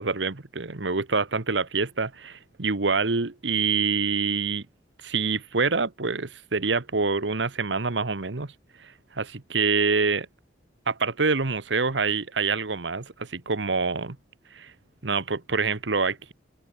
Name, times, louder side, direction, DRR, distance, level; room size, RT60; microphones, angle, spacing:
voice 1, 0.0-4.6 5.0-8.5 8.8-10.3 10.9-14.2 14.5-14.7 15.0-16.3, right 4 dB, 90° right, 1.4 m, -26 dB
head